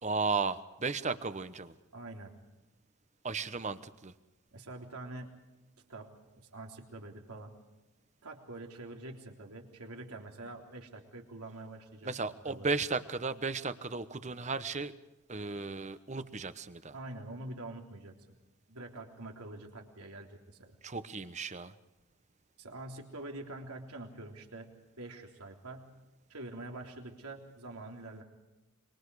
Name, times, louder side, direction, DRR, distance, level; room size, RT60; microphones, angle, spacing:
voice 1, 0.0-1.7 3.2-4.1 12.0-14.9 15.3-16.9 20.8-21.7, right 4 dB, 30° right, 12 dB, 1.0 m, -35 dB
voice 2, 1.9-2.3 4.5-5.4 5.9-7.5 8.2-12.1 12.5-12.7 16.9-18.1 18.7-20.8 22.6-24.7 25.0-26.0 26.3-28.2, right 2 dB, 90° right, 2 dB, 3.6 m, -45 dB
26.0 x 24.5 x 4.9 m, 1.0 s
head